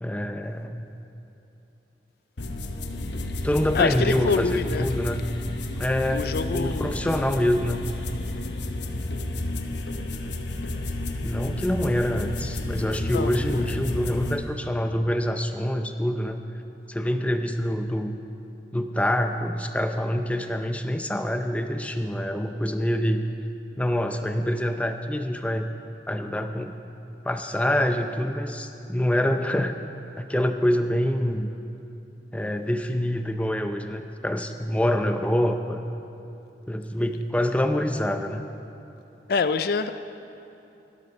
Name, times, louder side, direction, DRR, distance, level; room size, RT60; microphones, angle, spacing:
voice 1, 0.0-0.9 2.8-5.3 5.8-6.2 6.5-7.9 11.2-16.4 16.9-18.2 18.7-23.2 23.8-25.7 26.1-26.8 27.2-29.7 30.2-31.5 32.3-35.8 36.7-38.4, equal, 10° left, 6 dB, 0.5 m, -26 dB
sound 1, 2.4-14.4, left 2 dB, 85° left, 0.9 m, -31 dB
voice 2, 3.7-4.9 6.1-7.1 13.1-13.7 39.3-39.9, left 4 dB, 55° left, 11 dB, 0.4 m, -26 dB
12.5 x 12.5 x 5.5 m, 2.8 s
head